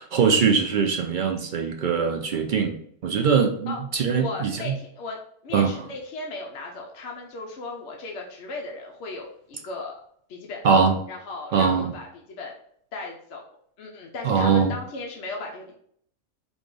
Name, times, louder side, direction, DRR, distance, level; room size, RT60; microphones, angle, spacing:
voice 1, 0.0-2.7 3.0-4.7 5.5-5.7 10.6-11.0 11.5-11.9 14.2-14.8, right 5 dB, 65° right, 3 dB, 0.5 m, -22 dB
voice 2, 4.2-5.2 5.4-10.0 10.3-10.7 11.1-12.6 12.9-13.4 13.8-15.8, left 3 dB, 65° left, 0 dB, 0.9 m, -36 dB
4.9 x 2.3 x 3.8 m, 0.65 s
omnidirectional pair, 1.4 m